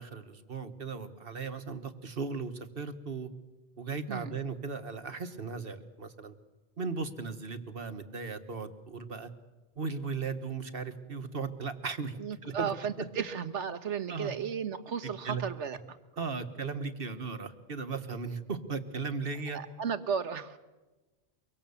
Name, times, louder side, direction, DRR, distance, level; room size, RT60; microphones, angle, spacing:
voice 1, 0.0-3.3 3.8-6.3 6.8-9.3 9.8-12.7 14.1-14.3 15.3-15.4 16.2-19.6, right 4 dB, 55° right, 9 dB, 1.6 m, -37 dB
voice 2, 12.2-16.0 19.5-20.6, right 7 dB, 80° right, 10 dB, 1.5 m, -34 dB
24.5 x 24.0 x 7.1 m, 1.2 s
omnidirectional pair, 1.2 m